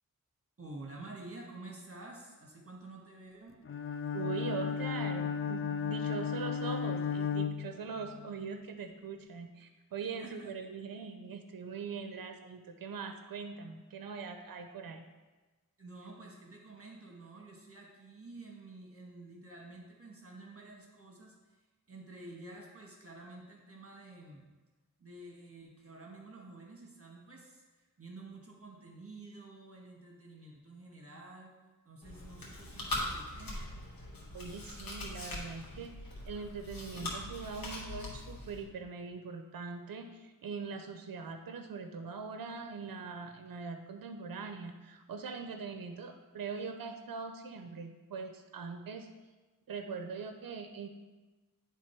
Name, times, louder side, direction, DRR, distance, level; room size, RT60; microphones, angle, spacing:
voice 1, 0.6-3.6 10.2-10.5 15.8-24.4 25.0-31.5 31.8-33.7, right 2 dB, 40° right, -1 dB, 1.4 m, -50 dB
Bowed string instrument, 3.6-8.2, left 7 dB, 40° left, 0.4 m, -34 dB
voice 2, 4.1-15.0 34.3-49.1 49.7-50.9, right 5 dB, 80° right, 6 dB, 0.6 m, -42 dB
Chewing mastication, 32.0-38.6, left 2 dB, 85° left, 1.6 m, -41 dB
10.0 x 3.5 x 4.5 m, 1.2 s
cardioid pair, 50°, 34 cm